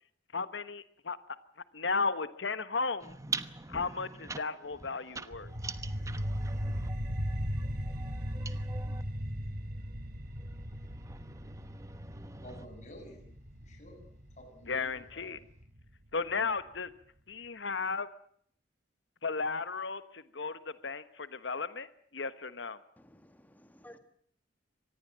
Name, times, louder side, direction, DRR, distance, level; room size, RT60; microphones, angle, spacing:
voice 1, 0.3-1.2 1.7-3.1 3.7-5.5 14.7-15.4 16.1-16.9 17.3-18.1 19.2-21.9 22.1-22.8, left 4 dB, 75° left, 1.3 m, -34 dB
sound 1, 3.0-9.1 9.9-12.7, right 4 dB, 15° right, 1.1 m, -44 dB
sound 2, 5.3-16.3, equal, 55° right, 3.1 m, -38 dB
voice 2, 12.4-13.2 13.6-14.0 14.4-15.3, equal, 40° left, 7.7 m, -51 dB
voice 3, 23.0-24.0, left 1 dB, 10° left, 2.1 m, -55 dB
25.5 x 19.5 x 7.6 m
head